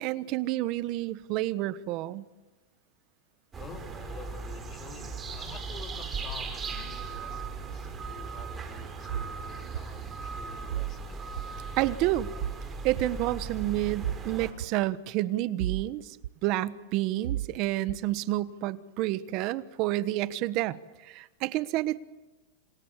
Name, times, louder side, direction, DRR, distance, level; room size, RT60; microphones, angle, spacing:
voice 1, 0.0-2.2 11.8-12.3 12.8-16.2 16.4-22.0, right 15 dB, 45° right, 15 dB, 1.2 m, -29 dB
sound 1, 3.5-14.5, right 4 dB, 20° right, 4.7 m, -38 dB
voice 2, 3.6-11.2, left 5 dB, 25° left, 5 dB, 3.6 m, -48 dB
sound 2, 9.1-9.3 9.7-9.9 10.7-10.9 11.4-11.5 12.4-12.6 13.0-13.1 14.0-14.2 14.6-14.7 15.6-15.9 16.2-16.3 17.2-17.5 17.9-18.0, right 12 dB, 75° right, 0.9 m, -32 dB
28.5 x 27.0 x 7.5 m, 1.1 s
supercardioid pair, 145°, 0 cm